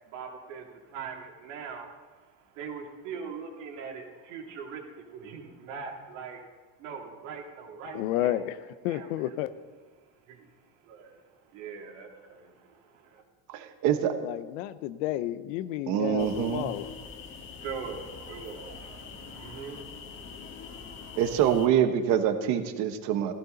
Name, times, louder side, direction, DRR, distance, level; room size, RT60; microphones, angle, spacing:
voice 1, 0.1-4.8 5.1-6.4 6.8-8.5 8.8-9.2 10.3-10.5 10.8-11.2 11.5-13.2 17.6-19.8, right 5 dB, 75° right, 1 dB, 3.1 m, -41 dB
voice 2, 7.9-9.5 14.2-16.9, left 13 dB, 85° left, 13 dB, 0.9 m, -31 dB
voice 3, 13.5-14.1 15.9-16.7 21.2-23.3, right 9 dB, 50° right, 8 dB, 1.3 m, -25 dB
sound 1, 16.2-21.7, left 5 dB, 30° left, 1.7 m, -44 dB
17.5 x 15.5 x 4.1 m, 1.4 s
cardioid pair, 175°, 38 cm